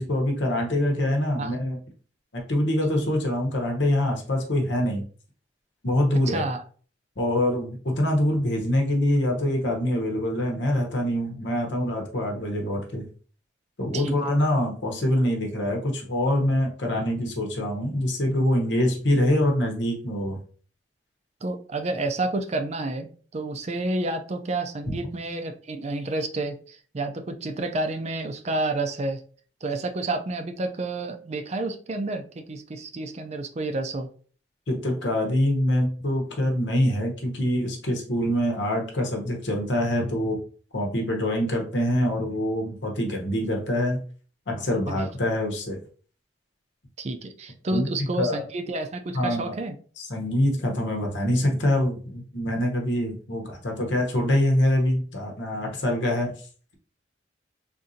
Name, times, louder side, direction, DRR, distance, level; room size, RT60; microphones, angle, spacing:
voice 1, 0.0-1.8 2.3-5.0 5.8-6.5 7.2-13.1 13.8-20.4 24.9-25.0 34.7-40.4 40.7-44.0 44.5-45.8 47.7-48.4 49.1-49.5 50.0-56.3, left 1 dB, 85° left, 1 dB, 1.0 m, -25 dB
voice 2, 6.3-6.6 13.9-14.2 21.4-29.2 29.6-34.1 44.9-45.0 47.0-49.8, right 2 dB, 40° right, 6 dB, 0.4 m, -30 dB
3.7 x 2.6 x 2.7 m, 0.42 s
head